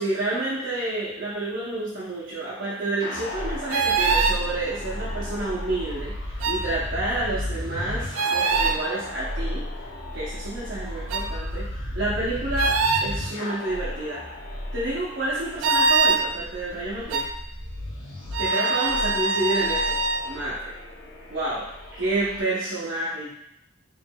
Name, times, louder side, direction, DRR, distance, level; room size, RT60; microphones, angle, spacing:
voice 1, 0.0-9.9 10.1-11.7 11.9-14.2 14.7-17.3 18.4-20.0 20.2-20.6 21.3-21.7 21.9-23.3, right 2 dB, 70° right, -8 dB, 0.9 m, -29 dB
sound 1, 3.0-22.4, left 1 dB, 70° left, 0.7 m, -34 dB
sound 2, 3.7-4.4 6.4-6.6 8.1-8.8 11.1-11.3 12.6-13.1 15.6-16.2 17.1-17.3 18.3-20.2, right 4 dB, 90° right, 0.4 m, -22 dB
4.5 x 3.2 x 2.3 m, 0.76 s
head